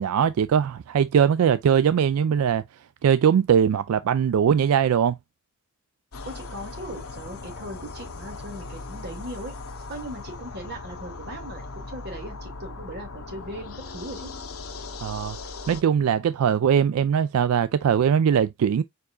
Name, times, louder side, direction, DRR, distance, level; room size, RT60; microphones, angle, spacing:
voice 1, 0.0-2.6 3.0-5.2 15.0-15.4 15.7-18.8, right 8 dB, 85° right, 0.3 m, -21 dB
sound 1, 6.1-15.8, left 3 dB, 85° left, 0.9 m, -39 dB
voice 2, 6.2-9.5 9.9-14.3, right 1 dB, 50° right, 2.2 m, -38 dB
4.8 x 4.7 x 2.3 m
head